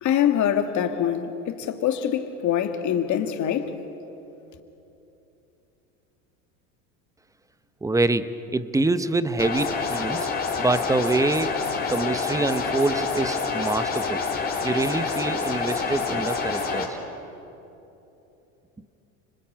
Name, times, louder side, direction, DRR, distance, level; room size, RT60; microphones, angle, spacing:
voice 1, 0.0-3.8, left 9 dB, 40° left, 2.2 m, -24 dB
voice 2, 7.8-10.3 10.6-11.6 11.9-14.2 14.6-17.0, right 2 dB, 10° right, 0.9 m, -25 dB
sound 1, 9.4-16.8, left 4 dB, 20° left, 3.9 m, -27 dB
30.0 x 20.0 x 8.8 m
supercardioid pair, 115°, 43 cm